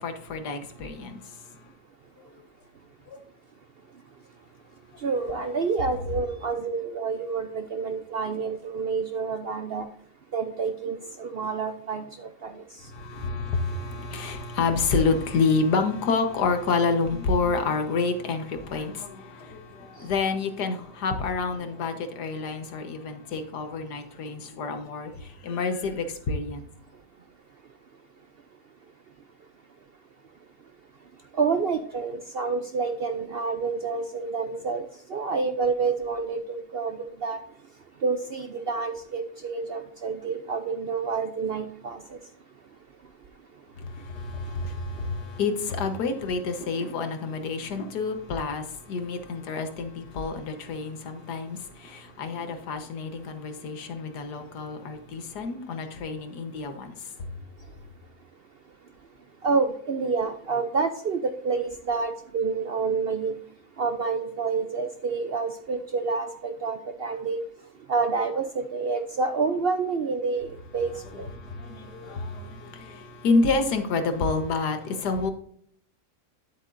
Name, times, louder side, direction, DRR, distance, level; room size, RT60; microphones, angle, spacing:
voice 1, 0.0-1.4 2.2-2.4 3.1-3.2 5.4-5.5 12.9-26.7 43.8-56.9 71.3-75.3, left 4 dB, 85° left, 1.7 m, -28 dB
voice 2, 5.0-9.9 10.3-12.6 31.3-37.4 38.0-42.2 59.4-63.3 63.8-67.4 67.9-71.3, right 4 dB, 60° right, 0.6 m, -28 dB
10.0 x 8.0 x 2.6 m
omnidirectional pair, 1.7 m